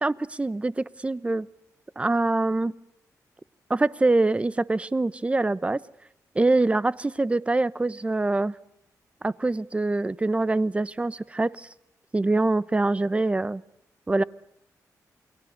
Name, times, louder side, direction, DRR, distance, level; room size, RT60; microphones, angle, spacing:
voice 1, 0.0-1.5 2.0-2.7 3.7-5.8 6.3-8.5 9.2-11.7 12.1-13.6 14.1-14.2, right 2 dB, 20° right, 18 dB, 0.9 m, -24 dB
29.0 x 22.0 x 6.6 m, 0.82 s
cardioid pair, 105°, 6 cm